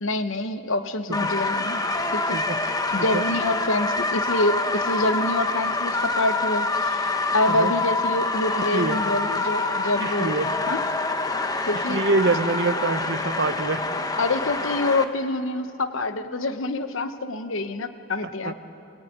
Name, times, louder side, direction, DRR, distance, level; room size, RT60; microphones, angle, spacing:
voice 1, 0.0-1.8 2.1-7.1 7.3-10.4 10.7-10.8 11.7-12.0 14.2-18.5, left 2 dB, 60° left, 10 dB, 1.0 m, -26 dB
sound 1, 1.1-15.0, left 3 dB, 15° left, 0.9 m, -26 dB
voice 2, 10.0-10.5 11.7-13.8 18.4-18.5, right 3 dB, 50° right, 9 dB, 1.0 m, -25 dB
24.0 x 17.0 x 9.4 m, 2.8 s
head